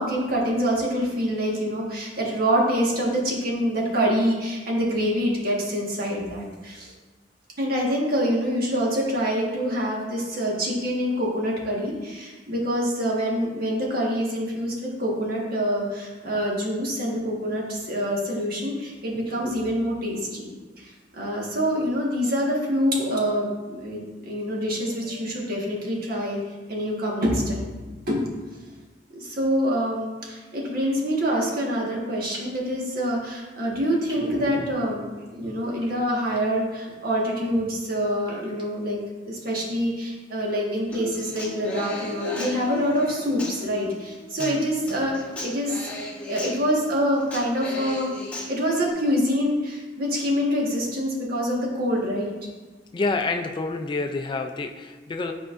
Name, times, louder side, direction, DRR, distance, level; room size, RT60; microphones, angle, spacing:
voice 1, 0.0-6.9 7.6-20.5 20.8-26.4 26.7-27.8 28.1-28.3 29.1-35.0 35.3-39.0 39.3-45.1 45.4-48.1 48.5-52.3, equal, 55° right, -3 dB, 1.4 m, -26 dB
sound 1, 30.8-31.0 32.3-32.6 34.1-34.3 35.8-36.4 37.0-37.3 38.2-38.6, equal, 30° right, 1.1 m, -45 dB
Human voice / Acoustic guitar, 40.9-48.9, left 1 dB, 10° left, 1.3 m, -37 dB
voice 2, 52.9-55.3, left 3 dB, 25° left, 5 dB, 0.3 m, -28 dB
10.0 x 4.5 x 2.5 m, 1.3 s
head